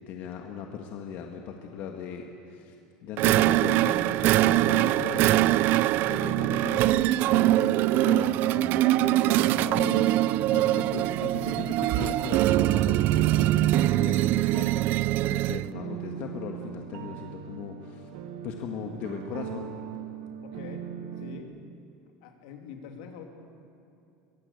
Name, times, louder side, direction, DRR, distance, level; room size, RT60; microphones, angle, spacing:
voice 1, 0.0-2.7 3.0-18.1 18.4-19.7, left 7 dB, 55° left, 3 dB, 1.5 m, -38 dB
sound 1, 3.2-15.7, right 15 dB, 55° right, 0.4 m, -23 dB
sound 2, 3.9-21.4, right 8 dB, 75° right, 1.4 m, -41 dB
voice 2, 20.4-20.8 21.2-21.5 22.2-23.2, left 7 dB, 80° left, 3 dB, 2.7 m, -44 dB
22.5 x 15.5 x 8.2 m, 2.6 s
supercardioid pair, 120°, 4 cm